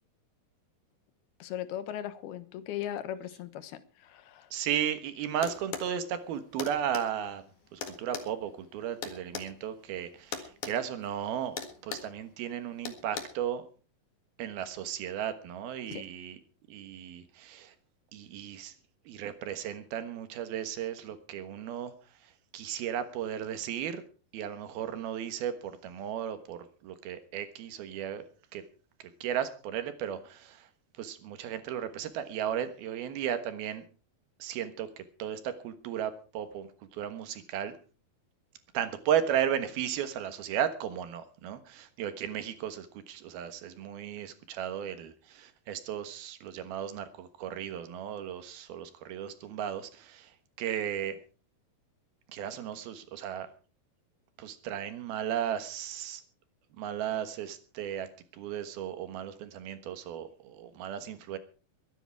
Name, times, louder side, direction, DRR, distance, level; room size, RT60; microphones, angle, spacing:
voice 1, 1.4-4.5 15.9-16.1, left 11 dB, 80° left, 12 dB, 3.2 m, -38 dB
voice 2, 4.5-7.4 7.7-13.6 14.4-16.4 16.7-17.7 18.1-18.7 19.1-21.9 22.5-24.0 24.3-28.2 28.5-28.6 29.2-30.7 31.0-33.8 34.4-37.7 38.7-50.3 50.6-51.2 52.3-53.5 54.4-56.2 56.8-58.1 58.4-61.4, right 9 dB, 80° right, 10 dB, 3.3 m, -35 dB
sound 1, 5.4-5.9 6.6-7.1 7.8-9.5 10.3-10.8 11.0-11.2 11.6-12.1 12.9-13.2, left 7 dB, 55° left, 3.0 m, -38 dB
22.0 x 10.0 x 4.7 m, 0.37 s
omnidirectional pair, 4.4 m